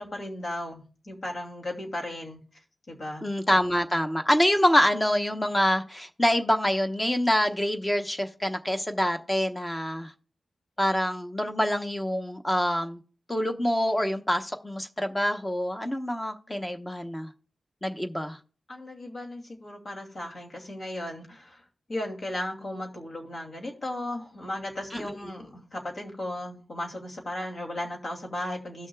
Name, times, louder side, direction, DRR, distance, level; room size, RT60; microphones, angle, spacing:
voice 1, 0.0-2.4 2.9-3.2 18.7-21.6 21.9-28.9, left 1 dB, 55° left, 2.5 m, -36 dB
voice 2, 3.2-10.1 10.8-13.0 13.3-17.3 17.8-18.4 24.9-25.2, equal, 15° left, 0.9 m, -26 dB
17.0 x 6.3 x 2.3 m
wide cardioid pair, 100°, 0 cm